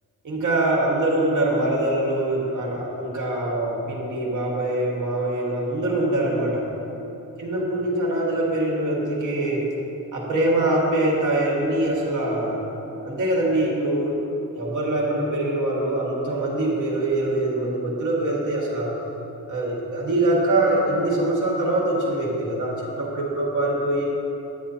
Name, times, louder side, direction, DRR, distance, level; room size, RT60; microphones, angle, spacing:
voice 1, 0.2-6.6 7.4-9.7 10.1-12.6 13.0-14.2 14.5-19.0 19.5-24.0, right 1 dB, 60° right, -3 dB, 1.7 m, -23 dB
9.3 x 8.7 x 2.8 m, 3.0 s
wide cardioid pair, 135°, 34 cm